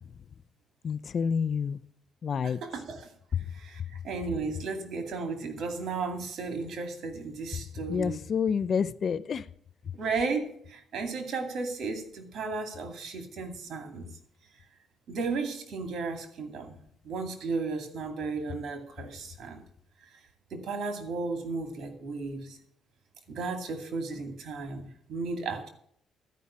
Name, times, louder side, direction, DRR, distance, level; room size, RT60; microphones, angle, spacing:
voice 1, 0.8-1.8 2.2-2.6 7.9-9.4, left 6 dB, 50° left, 16 dB, 0.5 m, -28 dB
voice 2, 2.4-3.1 3.5-8.2 9.9-14.1 15.1-16.8 17.0-19.6 20.5-22.6 23.3-25.7, right 4 dB, 65° right, 6 dB, 2.4 m, -34 dB
13.0 x 5.4 x 8.5 m, 0.66 s
cardioid pair, 90°, 0 cm